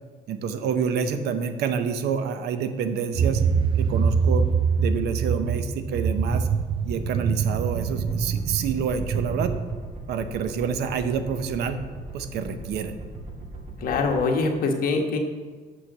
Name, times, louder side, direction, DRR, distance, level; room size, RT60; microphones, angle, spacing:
voice 1, 0.3-3.4 3.8-4.5 4.8-6.5 6.8-9.5 10.1-11.8 12.1-13.0, right 6 dB, 75° right, 10 dB, 0.8 m, -28 dB
sound 1, 3.2-9.8, right 6 dB, 30° right, 0.4 m, -24 dB
sound 2, 7.9-14.1, right 3 dB, 45° right, 2.0 m, -39 dB
voice 2, 13.8-15.2, left 3 dB, 60° left, 2 dB, 1.3 m, -23 dB
6.3 x 6.2 x 6.6 m, 1.4 s
cardioid pair, 110°, 17 cm